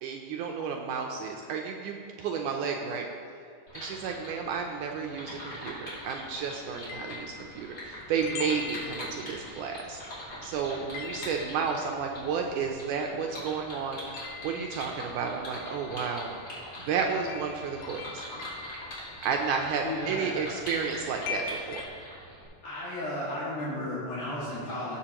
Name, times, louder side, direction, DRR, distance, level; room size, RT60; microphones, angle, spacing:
voice 1, 0.0-3.1 3.7-10.0 10.4-16.4 16.9-18.2 19.2-21.9, right 6 dB, 80° right, 2 dB, 2.0 m, -32 dB
sound 1, 3.7-22.4, left 1 dB, 35° left, 2.9 m, -43 dB
sound 2, 6.7-13.4 13.6-21.9, left 5 dB, 85° left, 2.6 m, -43 dB
voice 2, 19.8-20.5 22.6-25.0, left 1 dB, 65° left, -9 dB, 3.4 m, -34 dB
17.0 x 6.9 x 3.0 m, 2.3 s
omnidirectional pair, 3.9 m